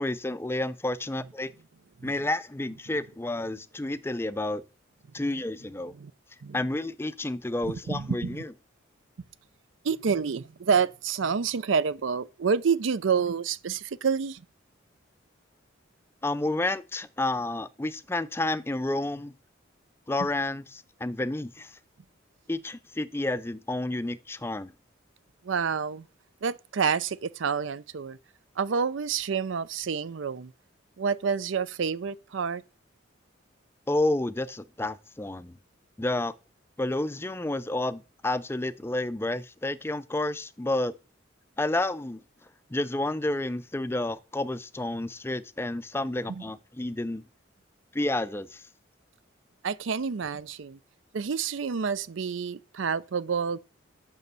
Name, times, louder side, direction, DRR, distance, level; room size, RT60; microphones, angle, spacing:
voice 1, 0.0-1.5 2.0-4.6 5.1-5.9 6.5-8.5 16.2-19.3 20.1-21.8 22.5-24.7 33.9-35.6 36.0-36.3 36.8-40.9 41.6-42.2 42.7-47.2 47.9-48.6, left 2 dB, 10° left, 0.4 m, -30 dB
voice 2, 7.6-8.4 9.8-14.4 25.4-26.1 26.4-28.2 28.6-30.5 31.0-32.6 46.3-46.4 49.6-50.8 51.1-53.6, right 6 dB, 75° right, 0.5 m, -28 dB
6.7 x 6.1 x 6.8 m
head